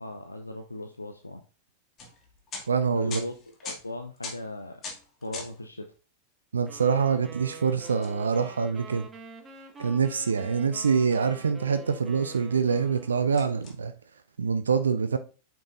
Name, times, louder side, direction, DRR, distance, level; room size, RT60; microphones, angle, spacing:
voice 1, 0.0-1.4 2.9-4.8 5.2-5.9, left 1 dB, 85° left, 0.6 m, -38 dB
sound 1, 2.0-5.7 5.9-6.0 7.8-8.9 9.4-10.0 10.9-11.5 12.1-12.2 12.5-12.7 13.3-13.7, left 4 dB, 30° left, 2.1 m, -43 dB
voice 2, 2.7-3.2 6.5-9.1 9.8-13.9 14.4-15.2, right 6 dB, 70° right, 0.4 m, -25 dB
sound 2, 6.7-13.6, right 4 dB, 20° right, 1.6 m, -47 dB
8.4 x 6.0 x 2.6 m
figure-of-eight pair, 90°, 0 cm